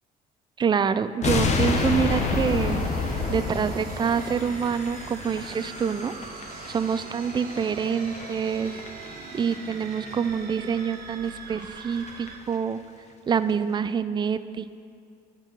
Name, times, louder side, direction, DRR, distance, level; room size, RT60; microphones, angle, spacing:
voice 1, 0.6-2.8 3.3-6.1 6.7-8.8 9.3-12.8 13.3-14.8, right 6 dB, 25° right, 13 dB, 0.4 m, -26 dB
sound 1, 1.2-10.4 10.7-10.8 11.2-11.3 11.6-11.7 11.9-12.3 12.5-12.6, left 4 dB, 40° left, 1.0 m, -30 dB
sound 2, 1.4-12.4, right 5 dB, 65° right, 1.1 m, -42 dB
13.0 x 4.6 x 6.8 m, 2.3 s
cardioid pair, 110°, 17 cm